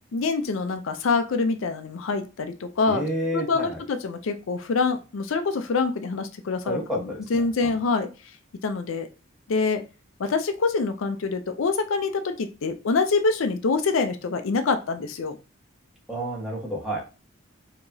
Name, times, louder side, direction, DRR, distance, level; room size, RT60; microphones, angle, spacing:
voice 1, 0.1-3.1 3.3-6.8 7.3-8.1 8.6-9.1 9.5-9.8 10.2-15.4, left 4 dB, 70° left, 7 dB, 0.4 m, -25 dB
voice 2, 2.9-3.8 6.6-7.7 16.1-17.0, right 1 dB, ahead, -3 dB, 1.1 m, -30 dB
4.6 x 2.9 x 2.6 m, 0.31 s
head